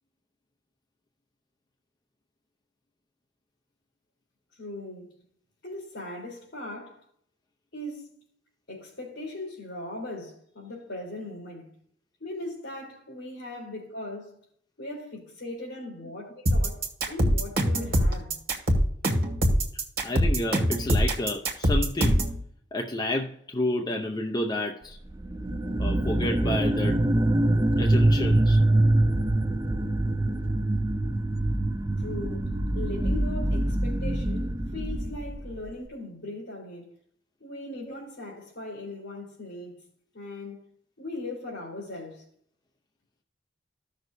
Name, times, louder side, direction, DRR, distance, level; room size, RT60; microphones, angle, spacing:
voice 1, 4.6-5.2 5.6-7.0 7.7-8.1 8.7-11.7 12.2-14.4 14.8-18.4 32.0-36.9 37.4-39.8 40.1-40.6 41.0-42.2, left 2 dB, 65° left, 3.7 m, -39 dB
sound 1, 16.5-22.4, equal, 55° right, 2.0 m, -23 dB
voice 2, 20.0-22.2 22.7-25.0 25.8-27.0 27.8-28.6 37.9-38.0, left 1 dB, 25° left, 0.6 m, -30 dB
sound 2, 25.1-35.7, right 1 dB, 20° right, 0.5 m, -24 dB
15.0 x 6.3 x 2.6 m
head